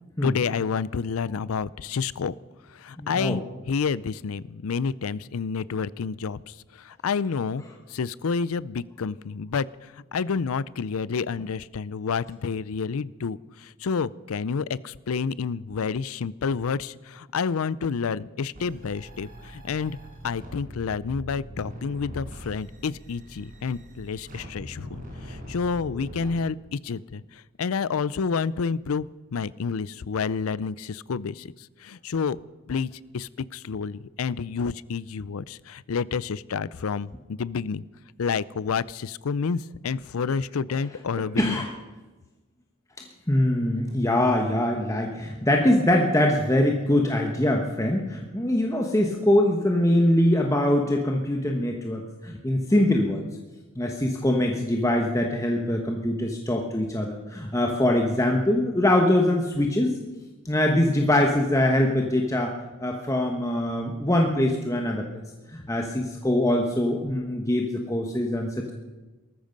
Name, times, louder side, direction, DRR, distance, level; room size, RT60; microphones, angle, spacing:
voice 1, 0.2-2.3 2.8-6.5 6.8-7.6 7.9-9.7 10.1-20.0 20.2-25.0 25.3-27.2 27.6-31.5 31.8-32.4 32.7-37.8 38.2-41.6, left 5 dB, 85° left, 20 dB, 0.5 m, -29 dB
voice 2, 3.0-3.4 26.0-26.1 40.7-40.8 41.2-41.7 43.3-53.2 53.7-62.5 62.8-65.1 65.5-68.7, left 1 dB, 15° left, 2 dB, 1.2 m, -23 dB
sound 1, 18.5-26.3, equal, 40° right, 4.7 m, -42 dB
18.5 x 14.0 x 5.3 m, 1.2 s
head